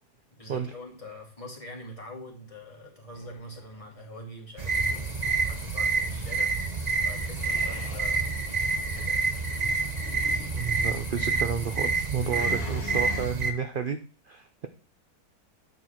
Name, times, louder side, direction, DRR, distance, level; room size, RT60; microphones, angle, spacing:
voice 1, 0.4-5.1 5.5-8.4 8.9-9.3, left 1 dB, 20° left, -2 dB, 2.6 m, -44 dB
sound 1, 3.1-4.0 7.4-8.1 8.8-9.3 9.9-10.6 12.2-13.3, left 7 dB, 75° left, 1.3 m, -43 dB
sound 2, 4.6-13.5, right 4 dB, 30° right, 0.9 m, -28 dB
sound 3, 4.7-12.5, left 4 dB, 55° left, 2.2 m, -46 dB
voice 2, 10.5-14.0 14.3-14.7, right 7 dB, 50° right, 8 dB, 0.6 m, -31 dB
9.4 x 4.6 x 5.8 m, 0.40 s
omnidirectional pair, 1.7 m